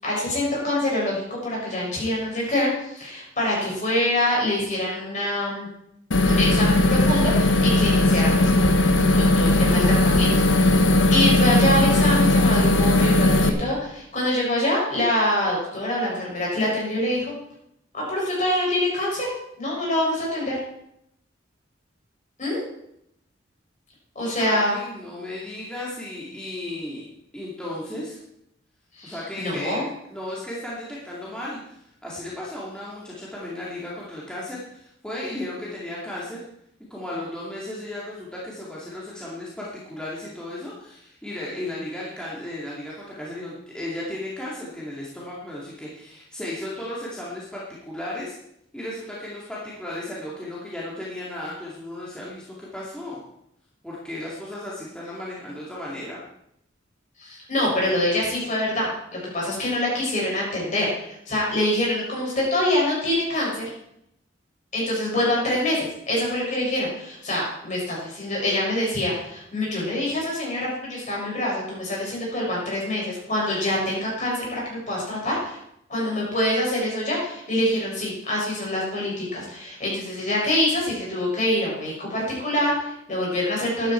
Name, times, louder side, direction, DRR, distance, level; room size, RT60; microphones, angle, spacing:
voice 1, 0.0-5.7 6.3-8.7 9.1-17.3 17.9-19.3 19.6-20.6 22.4-22.6 24.1-24.7 29.0-29.8 57.2-63.7 64.7-75.6 75.9-83.9, left 1 dB, 40° left, -4 dB, 6.6 m, -25 dB
sound 1, 6.1-13.5, left 1 dB, 75° left, 1.2 m, -18 dB
voice 2, 24.4-27.0 27.3-28.2 29.0-29.8 30.1-36.4 36.9-48.3 48.7-53.2 53.8-56.2, left 1 dB, 5° left, -6 dB, 2.4 m, -35 dB
14.0 x 11.5 x 4.5 m, 0.78 s
head